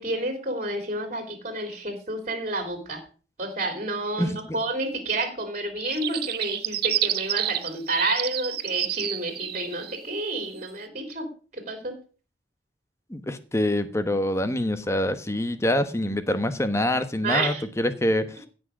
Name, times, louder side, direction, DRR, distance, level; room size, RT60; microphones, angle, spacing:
voice 1, 0.0-3.0 3.4-11.3 11.5-11.9 17.2-17.6, right 2 dB, 40° right, 6 dB, 3.4 m, -30 dB
voice 2, 4.2-4.6 13.1-18.4, left 1 dB, 15° left, 11 dB, 1.1 m, -25 dB
sound 1, 5.9-10.0, right 12 dB, 55° right, 0.9 m, -28 dB
16.0 x 6.2 x 6.5 m, 0.38 s
head